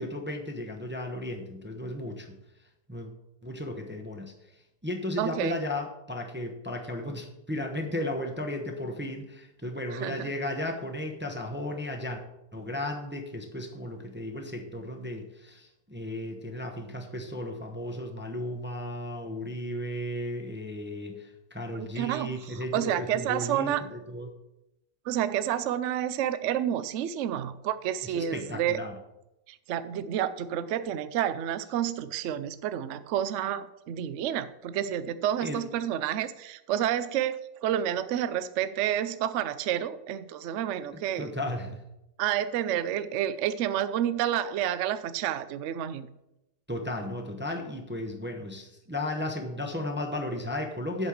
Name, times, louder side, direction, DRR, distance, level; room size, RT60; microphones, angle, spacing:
voice 1, 0.0-2.3 2.9-3.1 3.4-4.3 4.8-12.2 12.5-24.3 28.0-28.9 35.4-35.6 40.9-41.8 46.7-51.1, left 1 dB, 15° right, 2 dB, 0.4 m, -35 dB
voice 2, 5.2-5.6 9.9-10.3 21.7-23.8 25.0-28.8 29.5-41.3 42.2-46.1, right 10 dB, 90° right, 14 dB, 0.6 m, -29 dB
8.0 x 5.4 x 7.1 m, 0.89 s
omnidirectional pair, 1.9 m